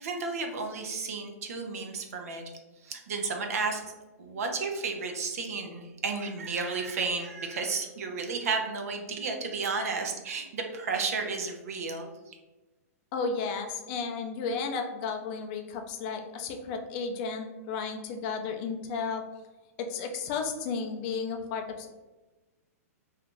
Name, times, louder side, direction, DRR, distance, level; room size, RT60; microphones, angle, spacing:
voice 1, 0.0-2.4 2.8-12.4, right 4 dB, 65° right, 4 dB, 0.6 m, -33 dB
voice 2, 13.1-19.2 19.8-21.9, left 5 dB, 35° left, 4 dB, 0.4 m, -33 dB
2.6 x 2.4 x 3.7 m, 1.1 s
hypercardioid pair, 150°, 8 cm